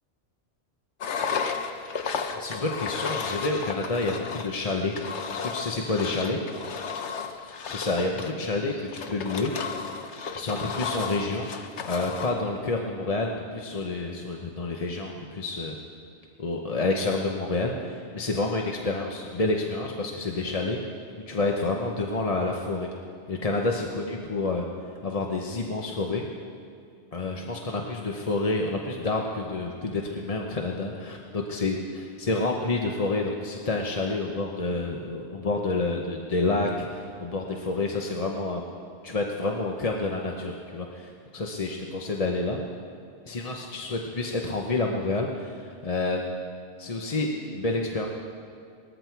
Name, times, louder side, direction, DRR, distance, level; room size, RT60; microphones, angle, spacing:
Engine, 1.0-12.4, left 5 dB, 80° left, 1.2 m, -33 dB
voice 1, 2.3-5.0 5.3-6.4 7.7-9.5 10.3-11.5 11.8-15.7 16.4-20.8 21.3-22.9 23.3-24.6 25.0-26.2 27.1-38.7 39.0-42.6 43.3-46.4 46.8-48.1, left 2 dB, 35° left, 1 dB, 0.9 m, -29 dB
19.5 x 14.0 x 4.6 m, 2.3 s
omnidirectional pair, 1.2 m